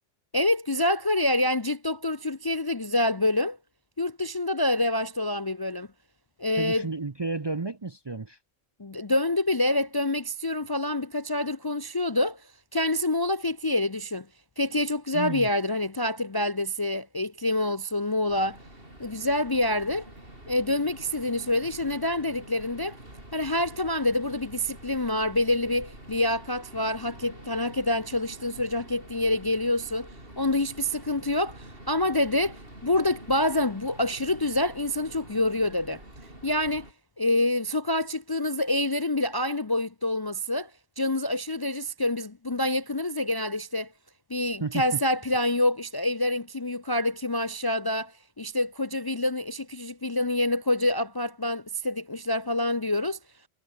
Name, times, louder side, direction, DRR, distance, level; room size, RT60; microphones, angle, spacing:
voice 1, 0.3-3.6 4.0-5.9 6.4-6.9 8.8-12.4 12.7-14.3 14.6-18.6 19.0-20.1 20.5-23.0 23.3-30.1 30.4-36.0 36.4-36.9 37.2-40.7 41.0-43.9 44.3-53.2, left 1 dB, 25° left, 0.5 m, -27 dB
voice 2, 6.6-8.4 15.1-15.5 44.6-45.0, right 3 dB, 30° right, 0.6 m, -32 dB
sound 1, 18.3-36.9, right 1 dB, 50° right, 8.2 m, -47 dB
omnidirectional pair, 1.2 m